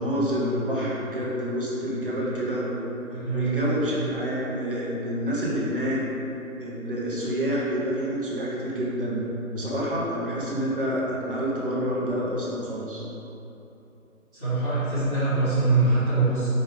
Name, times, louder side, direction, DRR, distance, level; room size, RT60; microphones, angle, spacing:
voice 1, 0.0-2.8 3.3-6.0 6.6-9.2 9.5-13.0, equal, 40° right, -6 dB, 1.1 m, -28 dB
voice 2, 3.1-4.1 14.3-16.5, right 3 dB, 5° right, -24 dB, 0.9 m, -24 dB
5.2 x 5.0 x 3.7 m, 3.0 s
figure-of-eight pair, 160°, 43 cm